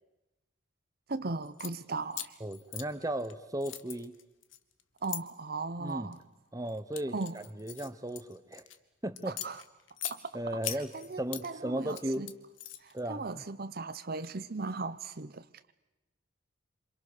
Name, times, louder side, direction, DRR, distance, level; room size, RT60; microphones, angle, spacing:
voice 1, 1.1-2.4 5.0-6.2 7.1-7.4 9.3-9.6 10.0-10.4 10.7-12.3 12.8-15.5, right 3 dB, 50° right, 0.8 m, -37 dB
sound 1, 1.4-1.7 2.1-3.3 3.6-5.2 5.9-6.2 6.7-8.8 9.2-10.2 10.6-11.5 11.8-13.0, left 11 dB, 75° left, 1.6 m, -40 dB
voice 2, 2.4-4.2 5.8-6.1 6.5-7.2 7.6-8.7 9.0-9.4 10.3-10.9 11.2-12.3 12.9-13.4, right 1 dB, 15° right, 1.0 m, -35 dB
28.0 x 27.5 x 6.7 m
head